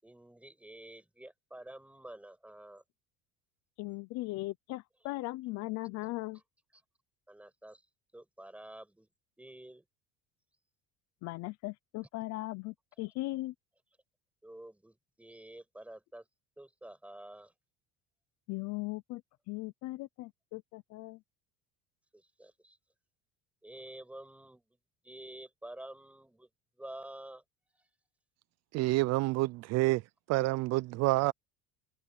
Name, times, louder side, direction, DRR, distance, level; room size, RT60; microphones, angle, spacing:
voice 1, 0.0-2.8 6.7-6.8 7.3-7.8 8.1-9.1 9.4-9.8 14.4-16.3 16.6-17.5 22.1-22.8 23.6-24.6 25.0-26.5 26.8-27.4 27.8-27.9, right 1 dB, 5° right, 6.9 m, -49 dB
voice 2, 3.8-6.4 11.2-13.5 18.5-19.2 19.5-21.2, left 20 dB, 60° left, 0.7 m, -38 dB
voice 3, 28.7-30.0 30.3-31.3, right 20 dB, 60° right, 0.5 m, -28 dB
cardioid pair, 155°, 30 cm